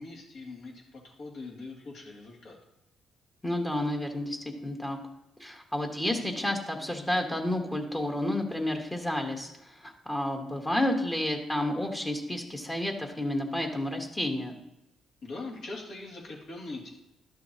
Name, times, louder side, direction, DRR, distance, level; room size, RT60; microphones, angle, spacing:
voice 1, 0.0-2.6 15.2-16.9, left 3 dB, 70° left, -2 dB, 2.2 m, -42 dB
voice 2, 3.4-4.4 4.6-5.0 5.4-14.6, left 1 dB, 15° left, 3 dB, 1.1 m, -30 dB
11.5 x 6.4 x 2.8 m, 0.94 s
cardioid pair, 90°, 0 cm